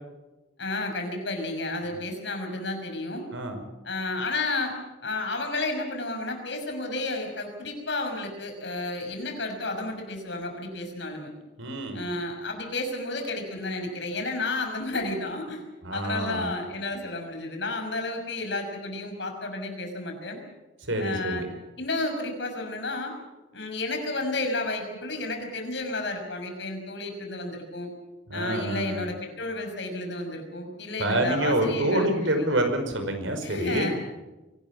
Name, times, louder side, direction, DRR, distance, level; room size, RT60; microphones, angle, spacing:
voice 1, 0.6-3.3 3.8-4.7 5.0-11.3 11.9-15.6 15.9-20.4 21.0-21.5 21.8-23.1 23.5-27.9 28.3-32.6 33.4-34.1, left 2 dB, 65° left, 4 dB, 5.9 m, -32 dB
voice 2, 3.3-3.6 11.6-12.1 15.8-16.5 20.9-21.5 28.3-29.1 31.0-33.9, right 1 dB, 85° right, 6 dB, 5.3 m, -27 dB
24.5 x 19.0 x 7.2 m, 1.1 s
head